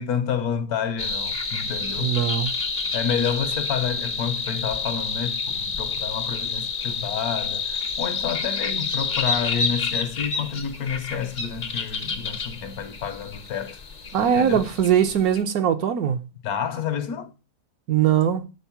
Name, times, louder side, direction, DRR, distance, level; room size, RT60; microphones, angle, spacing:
voice 1, 0.0-2.2 2.9-13.8 14.2-14.7 16.4-17.3, left 7 dB, 70° left, 1.2 m, -29 dB
sound 1, 1.0-15.4, left 5 dB, 45° left, 0.6 m, -29 dB
voice 2, 2.0-2.5 14.1-16.3 17.9-18.5, right 9 dB, 70° right, 1.1 m, -21 dB
8.1 x 4.1 x 5.7 m
omnidirectional pair, 1.8 m